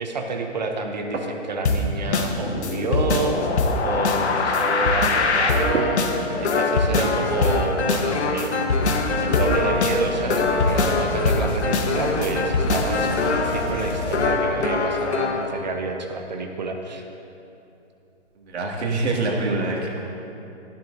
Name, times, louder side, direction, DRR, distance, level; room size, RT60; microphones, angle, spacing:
voice 1, 0.0-3.4 3.8-8.8 9.2-17.0, right 3 dB, 35° right, 4 dB, 0.8 m, -29 dB
sound 1, 0.7-18.8, right 3 dB, 90° right, 1.5 m, -41 dB
sound 2, 1.7-15.5, left 3 dB, 65° left, 1.2 m, -23 dB
sound 3, 8.7-14.3, left 1 dB, 35° left, 1.8 m, -32 dB
voice 2, 18.5-20.0, right 2 dB, 65° right, -1 dB, 2.3 m, -25 dB
15.5 x 10.5 x 2.7 m, 2.8 s
hypercardioid pair, 165°, 36 cm